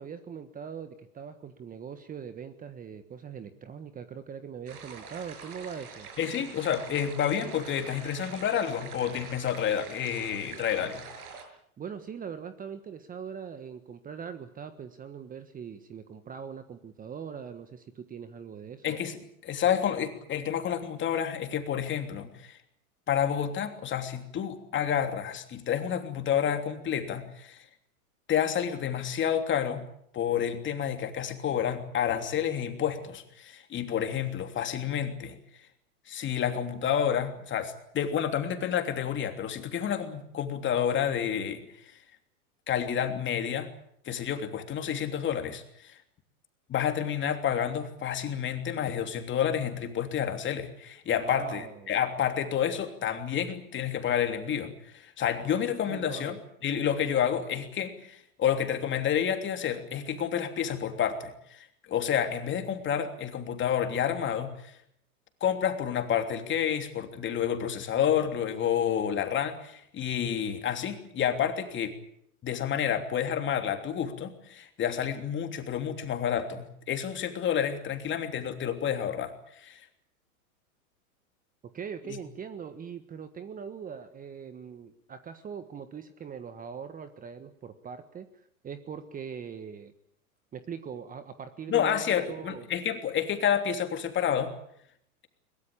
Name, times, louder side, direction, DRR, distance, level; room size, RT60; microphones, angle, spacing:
voice 1, 0.0-6.1 11.8-18.9 51.1-51.9 55.9-56.4 81.7-89.9 90.5-92.7, right 7 dB, 20° right, 10 dB, 1.4 m, -41 dB
sound 1, 4.7-11.4, right 5 dB, 75° right, 7.1 m, -45 dB
voice 2, 6.2-11.1 18.8-22.6 23.1-27.6 28.3-29.8 30.1-35.4 36.1-42.0 42.7-43.7 44.0-46.0 46.7-56.4 56.6-64.8 65.4-71.9 72.4-79.8 82.1-82.2 91.7-94.5, left 9 dB, 25° left, 6 dB, 3.1 m, -29 dB
23.0 x 21.5 x 8.6 m, 0.71 s
hypercardioid pair, 120°, 45 cm